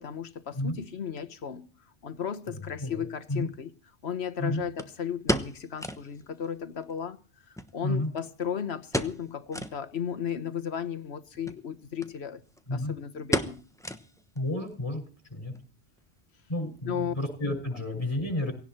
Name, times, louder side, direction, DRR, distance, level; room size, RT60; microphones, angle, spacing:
voice 1, 0.0-1.7 2.0-3.7 4.0-7.2 7.7-12.4 12.7-13.6 16.9-17.1, left 8 dB, 75° left, 1.4 m, -35 dB
voice 2, 2.5-3.5 4.4-4.6 7.8-8.1 12.7-13.0 14.3-15.0 15.3-15.5 16.5-18.5, left 1 dB, 25° left, 5.9 m, -31 dB
sound 1, 2.7-2.8 4.8-6.1 6.4-6.5 6.8-6.9 7.6-8.4 8.9-9.3 9.5-9.8 10.3-10.4 11.3-11.6 12.0-12.1 12.4-12.8 13.3-14.4 14.7-14.8 15.4-15.7 16.0-16.1, equal, 5° left, 0.9 m, -32 dB
18.5 x 17.0 x 4.5 m
omnidirectional pair, 1.1 m